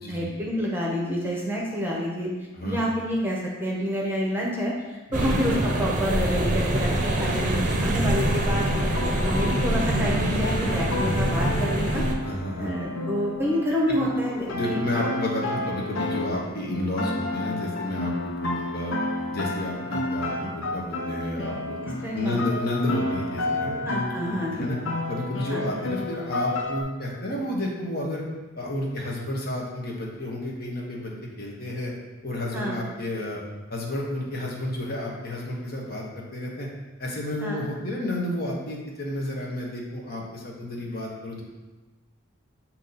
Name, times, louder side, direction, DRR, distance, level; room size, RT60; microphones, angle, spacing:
voice 1, 0.1-2.3 2.6-12.0 12.6-14.8 21.8-22.4 23.8-24.7 25.5-25.6 32.5-32.8 37.4-37.6, equal, 10° right, -3 dB, 0.8 m, -28 dB
sound 1, 5.1-12.2, right 1 dB, 40° right, 0.6 m, -25 dB
voice 2, 7.3-8.0 10.6-11.0 12.2-12.7 14.3-18.9 19.3-21.8 22.1-23.7 24.3-24.8 25.1-28.2 28.6-31.9 32.2-33.4 33.7-36.7 37.0-41.4, left 1 dB, 50° left, -2 dB, 1.1 m, -31 dB
sound 2, 8.2-26.8, left 2 dB, 75° left, 0.7 m, -31 dB
8.1 x 2.9 x 4.0 m, 1.2 s
head